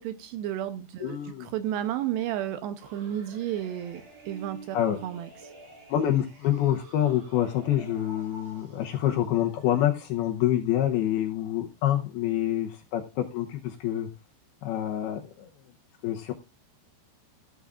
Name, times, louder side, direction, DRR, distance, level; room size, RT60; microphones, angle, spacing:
voice 1, 0.0-4.8 5.0-5.5, right 11 dB, 80° right, 10 dB, 2.5 m, -32 dB
voice 2, 1.0-1.5 4.7-5.0 5.9-14.1 14.6-15.5 16.0-16.3, left 11 dB, 80° left, 3 dB, 2.3 m, -27 dB
sound 1, 2.8-9.9, right 3 dB, 60° right, 6.5 m, -49 dB
15.5 x 12.0 x 2.4 m, 0.30 s
omnidirectional pair, 5.4 m